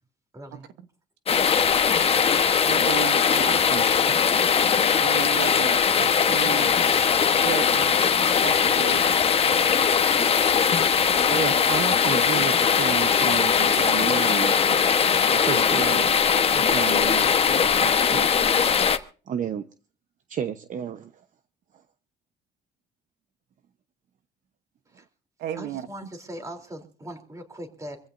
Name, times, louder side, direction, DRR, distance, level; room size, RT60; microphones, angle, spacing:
voice 1, 0.3-0.7 24.9-25.0 25.6-28.1, equal, 20° right, 3.3 m, -40 dB
sound 1, 1.3-19.0, left 7 dB, 35° left, 1.1 m, -20 dB
voice 2, 2.6-3.7 5.0-6.8 7.3-8.0 8.4-9.1 25.4-25.9, right 11 dB, 80° right, 1.1 m, -34 dB
voice 3, 3.4-3.9 11.3-14.8 15.3-16.2 16.5-18.3 19.3-19.7 20.3-21.2, right 9 dB, 50° right, 0.9 m, -32 dB
25.5 x 15.5 x 2.6 m
cardioid pair, 110°, 17 cm